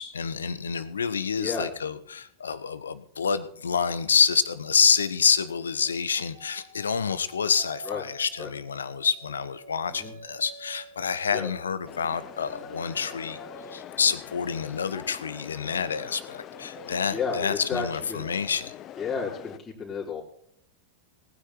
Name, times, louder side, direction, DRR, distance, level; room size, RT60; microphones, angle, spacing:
voice 1, 0.0-13.4 13.7-18.7, left 6 dB, 70° left, 14 dB, 1.1 m, -27 dB
voice 2, 1.4-1.7 7.8-8.0 8.4-8.5 9.9-10.2 11.3-11.5 17.1-18.3 19.0-20.2, left 5 dB, 15° left, -5 dB, 4.1 m, -32 dB
sound 1, 5.3-14.5 14.8-18.4, right 4 dB, 90° right, 3.5 m, -49 dB
sound 2, 11.9-19.6, left 12 dB, 35° left, 0.7 m, -44 dB
19.0 x 9.7 x 4.4 m, 0.65 s
figure-of-eight pair, 90°, 0 cm